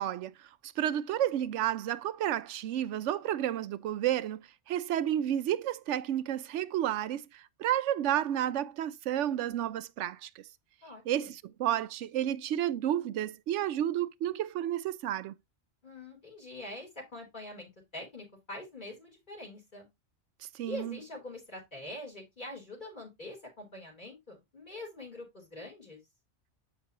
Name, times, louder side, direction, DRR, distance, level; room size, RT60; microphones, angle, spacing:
voice 1, 0.0-10.4 11.1-15.3 20.5-21.0, right 11 dB, 85° right, 0.9 m, -31 dB
voice 2, 10.8-11.3 15.8-19.9 20.6-26.0, left 1 dB, 40° left, 3.9 m, -44 dB
8.7 x 5.9 x 2.9 m
omnidirectional pair, 1.2 m